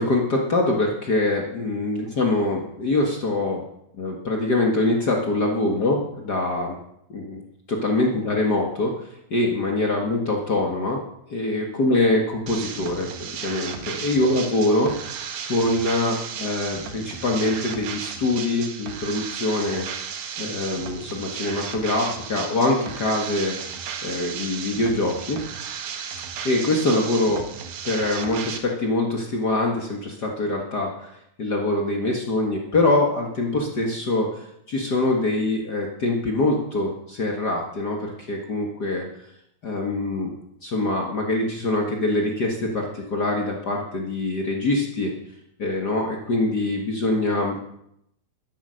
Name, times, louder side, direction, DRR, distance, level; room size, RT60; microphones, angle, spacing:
voice 1, 0.0-3.6 4.0-6.8 7.1-7.4 7.7-8.9 9.3-11.0 11.3-13.1 13.4-15.2 15.5-19.9 20.4-23.5 24.0-25.4 26.4-27.4 27.8-31.1 31.4-39.0 39.6-40.3 40.6-45.1 45.6-47.7, left 2 dB, 75° left, 1 dB, 0.9 m, -24 dB
sound 1, 12.5-28.6, right 7 dB, 85° right, 3.7 m, -34 dB
12.5 x 11.5 x 6.5 m, 0.77 s
omnidirectional pair, 4.8 m